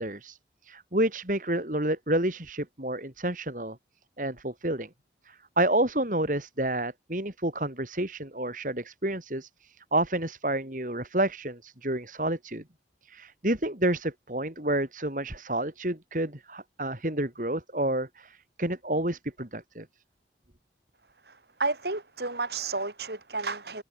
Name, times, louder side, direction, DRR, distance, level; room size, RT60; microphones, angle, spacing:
voice 1, 0.0-3.8 4.2-4.9 5.3-12.6 13.0-19.8, right 1 dB, 45° right, 3.4 m, -29 dB
voice 2, 21.6-23.8, right 3 dB, 70° right, 4.4 m, -31 dB
head